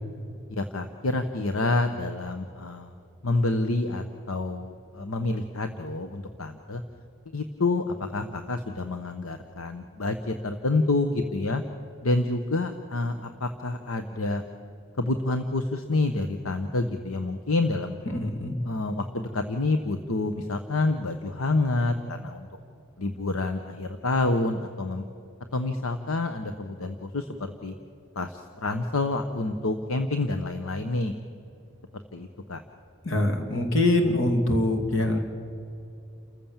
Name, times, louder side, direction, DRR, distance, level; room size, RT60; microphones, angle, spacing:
voice 1, 0.5-2.9 3.2-6.8 7.3-11.6 12.0-14.4 15.0-18.0 18.6-22.5 23.0-25.0 25.5-27.7 28.1-31.1 32.1-32.6, left 2 dB, 80° left, 8 dB, 1.0 m, -28 dB
voice 2, 18.1-18.6 33.0-35.2, left 1 dB, 60° left, 4 dB, 2.7 m, -24 dB
29.0 x 14.5 x 7.3 m, 2.6 s
head